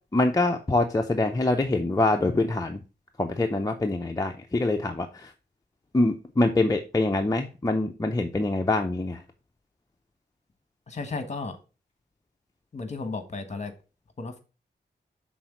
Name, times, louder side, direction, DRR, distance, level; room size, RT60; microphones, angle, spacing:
voice 1, 0.1-2.8 3.2-5.3 5.9-9.2, left 2 dB, 20° left, 0.6 m, -25 dB
voice 2, 10.9-11.5 12.7-13.7 14.2-14.4, left 3 dB, 40° left, 1.4 m, -34 dB
6.1 x 3.9 x 6.0 m
wide cardioid pair, 100°, 18 cm